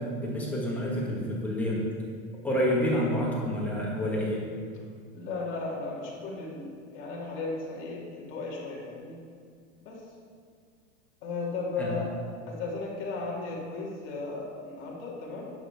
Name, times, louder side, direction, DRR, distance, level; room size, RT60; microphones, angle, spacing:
voice 1, 0.0-1.8 2.4-4.4 11.8-11.9, equal, 5° left, -5 dB, 1.7 m, -28 dB
voice 2, 5.1-9.2 9.8-10.0 11.2-12.1 12.5-15.6, left 3 dB, 35° left, -4 dB, 2.4 m, -35 dB
11.0 x 5.6 x 5.8 m, 2.1 s
supercardioid pair, 165°, 37 cm